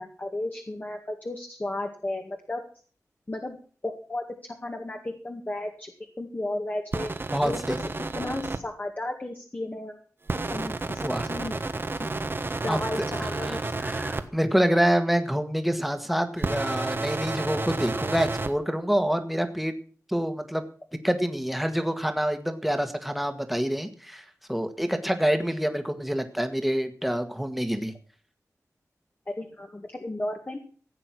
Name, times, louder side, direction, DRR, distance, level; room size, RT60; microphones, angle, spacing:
voice 1, 0.0-2.6 3.3-3.6 3.8-4.2 4.6-5.9 6.2-7.1 7.4-7.6 8.2-10.0 10.5-11.6 12.6-13.6 29.4-30.6, left 1 dB, 30° left, 3 dB, 1.9 m, -33 dB
sound 1, 6.9-8.6 10.3-14.2 16.4-18.5, right 3 dB, 40° right, 1.3 m, -31 dB
voice 2, 7.3-7.8 11.0-11.3 12.7-19.8 20.1-20.6 21.0-27.9, equal, ahead, 8 dB, 1.7 m, -27 dB
16.0 x 8.9 x 6.2 m, 0.43 s
wide cardioid pair, 105°, 6 cm